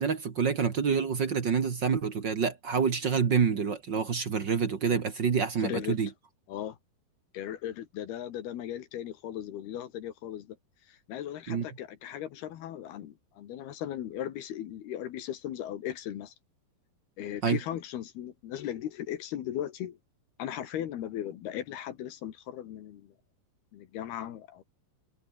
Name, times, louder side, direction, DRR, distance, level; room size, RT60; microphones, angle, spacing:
voice 1, 0.0-6.1 11.5-11.6 17.4-17.6, right 6 dB, 50° right, 1.3 m, -27 dB
voice 2, 5.6-6.0 6.5-6.8 7.3-10.6 10.9-16.3 17.2-20.0 20.4-23.1 23.7-24.6, left 11 dB, 75° left, 3.6 m, -37 dB
omnidirectional pair, 4.7 m